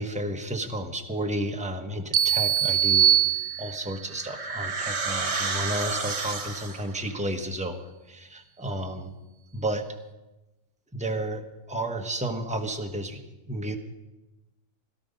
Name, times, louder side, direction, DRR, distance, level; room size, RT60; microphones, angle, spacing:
voice 1, 0.0-3.1 3.6-9.1 9.5-9.9 10.9-11.4 11.7-13.2 13.5-13.8, right 1 dB, 5° right, 4 dB, 1.0 m, -32 dB
sound 1, 2.1-4.0, right 10 dB, 85° right, 1.2 m, -22 dB
sound 2, 3.5-7.0, right 4 dB, 55° right, 1.6 m, -31 dB
17.0 x 12.5 x 5.3 m, 1.0 s
omnidirectional pair, 1.4 m